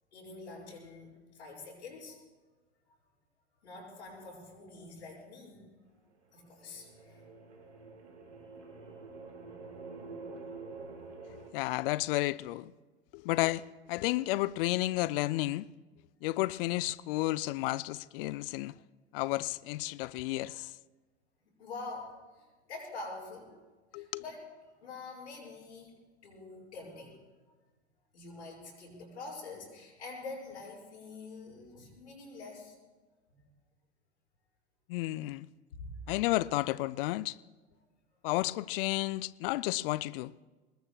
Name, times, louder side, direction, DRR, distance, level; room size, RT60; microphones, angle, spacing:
voice 1, 0.1-2.2 3.6-5.6 6.3-7.2 10.0-10.1 21.6-23.5 23.9-24.5 24.8-26.0 26.2-27.2 28.1-32.7 33.3-33.4 35.7-36.0, left 3 dB, 80° left, 6.8 m, -46 dB
sound 1, 6.4-11.5, right 4 dB, 90° right, 2.8 m, -47 dB
voice 2, 11.3-12.7 13.1-13.6 13.9-15.7 16.2-18.7 19.1-20.7 23.9-24.2 34.9-35.5 36.1-37.4 38.2-40.3, left 18 dB, 55° left, 0.5 m, -32 dB
25.0 x 20.5 x 2.3 m
hypercardioid pair, 85°, 34 cm